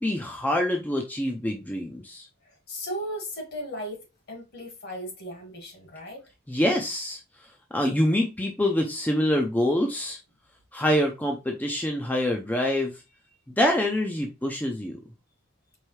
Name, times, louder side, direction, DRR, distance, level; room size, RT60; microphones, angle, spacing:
voice 1, 0.0-2.3 6.5-7.2 7.7-10.2 10.7-12.9 13.6-15.0, left 1 dB, 10° left, 0.4 m, -25 dB
voice 2, 2.7-6.3, equal, 55° left, 1.7 m, -36 dB
4.7 x 3.2 x 3.2 m
head